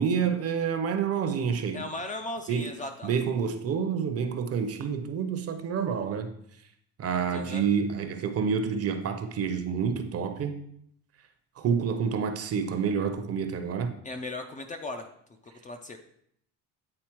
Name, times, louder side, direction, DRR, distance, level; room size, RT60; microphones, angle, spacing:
voice 1, 0.0-1.8 2.5-2.7 3.0-6.3 7.0-10.6 11.6-13.9, right 6 dB, 40° right, 8 dB, 0.8 m, -28 dB
voice 2, 1.7-3.1 7.3-7.6 14.0-15.1 15.4-16.0, left 2 dB, 20° left, 6 dB, 0.5 m, -37 dB
8.8 x 4.1 x 4.5 m, 0.70 s
cardioid pair, 155°, 35 cm